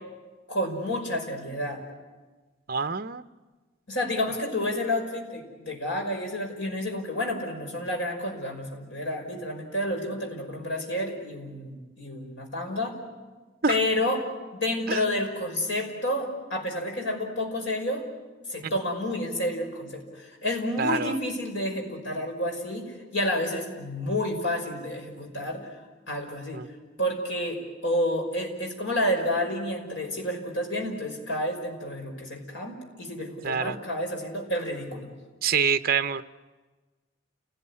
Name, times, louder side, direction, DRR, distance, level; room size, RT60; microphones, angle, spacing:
voice 1, 0.5-1.8 3.9-13.0 13.7-14.3 14.5-18.0 18.5-25.6 26.1-26.6 27.0-35.1, left 1 dB, 65° left, 2 dB, 5.5 m, -30 dB
voice 2, 2.7-3.2 13.6-13.8 14.9-15.0 18.6-18.7 20.8-21.1 26.5-26.7 33.4-33.8 35.4-36.2, right 6 dB, 45° right, 11 dB, 0.7 m, -26 dB
29.5 x 18.0 x 9.8 m, 1.3 s
head